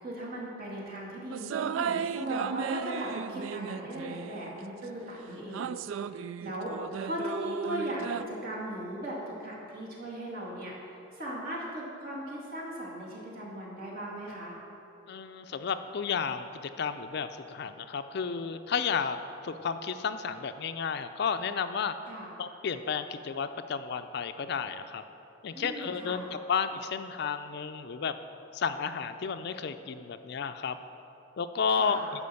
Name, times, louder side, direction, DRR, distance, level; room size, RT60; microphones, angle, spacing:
voice 1, 0.0-5.8 6.4-6.7 7.0-14.5 22.0-22.3 25.5-26.2 31.7-32.0, equal, 50° right, -5 dB, 2.3 m, -38 dB
sound 1, 1.3-4.7 5.5-8.2, right 7 dB, 80° right, 0.3 m, -35 dB
voice 2, 15.1-19.2 19.4-21.9 22.4-25.0 25.4-28.1 28.5-30.8 31.4-32.0, left 6 dB, 55° left, 10 dB, 0.4 m, -32 dB
11.5 x 4.9 x 6.9 m, 2.8 s
head